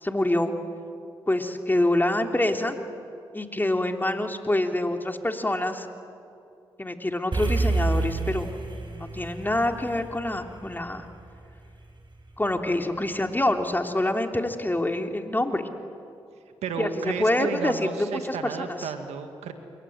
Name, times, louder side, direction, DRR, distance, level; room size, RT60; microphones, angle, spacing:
voice 1, 0.0-0.5 1.3-2.8 3.3-5.9 6.8-8.5 8.8-11.0 12.4-15.7 16.8-18.9, left 1 dB, 20° left, 4 dB, 3.3 m, -26 dB
sound 1, 7.3-11.8, right 3 dB, 50° right, 6.6 m, -29 dB
voice 2, 16.6-19.5, right 6 dB, 85° right, 7 dB, 2.1 m, -32 dB
27.0 x 23.0 x 9.5 m, 2.6 s
supercardioid pair, 40°, 11 cm